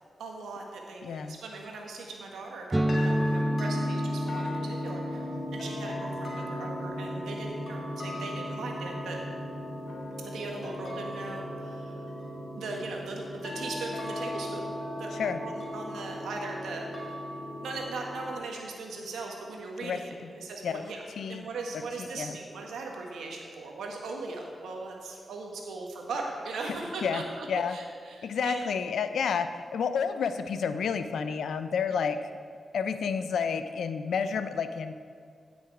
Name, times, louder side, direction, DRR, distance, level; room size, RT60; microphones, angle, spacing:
voice 1, 0.2-5.3 5.5-9.2 10.2-12.0 12.5-14.6 15.0-15.1 15.4-17.2 17.6-21.0 21.3-28.6, right 3 dB, 90° right, 1 dB, 1.5 m, -39 dB
voice 2, 1.0-1.4 15.1-15.4 19.8-20.3 20.6-20.8 21.2-21.5 22.0-22.4 26.7-26.8 27.0-27.2 27.5-27.8 28.2-32.2 32.7-34.9, left 6 dB, 85° left, 10 dB, 0.5 m, -30 dB
sound 1, 2.7-10.3, equal, 20° right, 0.5 m, -33 dB
sound 2, 2.9-18.3, left 1 dB, 60° left, 2.0 m, -37 dB
15.5 x 6.2 x 4.8 m, 2.2 s
cardioid pair, 45°, 0 cm